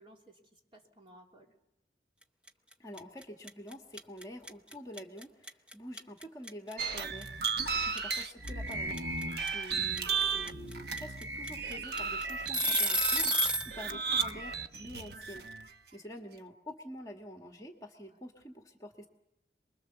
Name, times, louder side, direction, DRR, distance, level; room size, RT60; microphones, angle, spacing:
voice 1, 0.0-1.5 7.6-7.9 13.4-13.8 18.1-18.2, right 1 dB, 30° right, 0 dB, 3.2 m, -59 dB
sound 1, 2.5-2.7 3.0-13.7, equal, 5° right, 0.8 m, -31 dB
voice 2, 2.8-19.1, equal, 20° left, 3 dB, 1.6 m, -47 dB
sound 2, 6.8-15.7, right 5 dB, 65° right, 1.1 m, -34 dB
27.5 x 21.5 x 7.0 m, 0.86 s
head